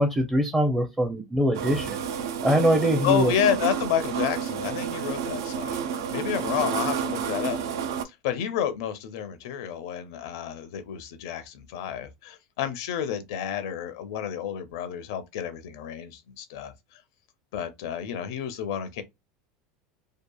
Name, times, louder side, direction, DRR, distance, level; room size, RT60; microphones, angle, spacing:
voice 1, 0.0-2.0 2.4-3.3, equal, 10° right, 0.5 m, -23 dB
sound 1, 1.5-8.0, right 7 dB, 90° right, 0.4 m, -30 dB
voice 2, 3.0-17.0 17.5-19.0, left 9 dB, 75° left, 0.5 m, -30 dB
2.7 x 2.4 x 2.2 m
supercardioid pair, 135°, 2 cm